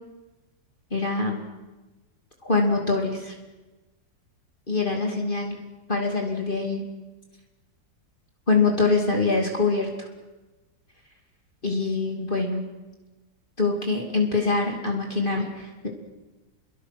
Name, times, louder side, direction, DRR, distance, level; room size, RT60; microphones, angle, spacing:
voice 1, 0.9-1.4 2.4-3.3 4.7-5.6 5.9-6.8 8.5-10.1 11.6-12.6 13.6-15.9, left 3 dB, 30° left, 0 dB, 2.9 m, -24 dB
29.5 x 22.0 x 6.1 m, 1.1 s
omnidirectional pair, 1.9 m